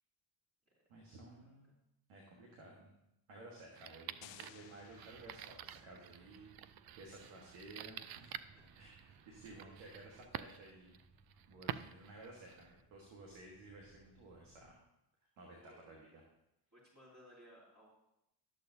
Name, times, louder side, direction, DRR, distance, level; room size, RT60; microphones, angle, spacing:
voice 1, 0.9-1.7 2.1-2.9 3.3-6.5 6.9-8.4 8.7-11.0 11.5-14.8 15.4-16.2, right 2 dB, 85° right, -1 dB, 1.6 m, -55 dB
sound 1, 3.7-12.8, right 11 dB, 50° right, 0.5 m, -50 dB
sound 2, 4.2-6.0, left 13 dB, 70° left, 0.6 m, -59 dB
sound 3, 4.8-14.7, right 1 dB, 5° right, 0.7 m, -68 dB
voice 2, 9.1-9.7 15.4-15.8 16.7-17.9, equal, 35° right, -7 dB, 3.3 m, -61 dB
12.0 x 6.7 x 2.7 m, 0.85 s
supercardioid pair, 65°, 47 cm